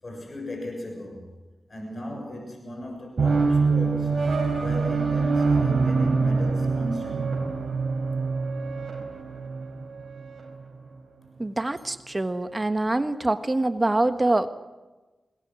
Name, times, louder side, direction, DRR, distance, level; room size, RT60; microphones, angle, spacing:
voice 1, 0.0-1.3 1.7-4.1 4.6-7.5, left 1 dB, 50° left, 2 dB, 7.0 m, -36 dB
sound 1, 3.2-10.5, right 4 dB, 60° right, 4.3 m, -25 dB
voice 2, 11.4-14.5, right 2 dB, 30° right, 10 dB, 1.4 m, -25 dB
21.0 x 20.5 x 7.6 m, 1.2 s
cardioid pair, 40°, 0 cm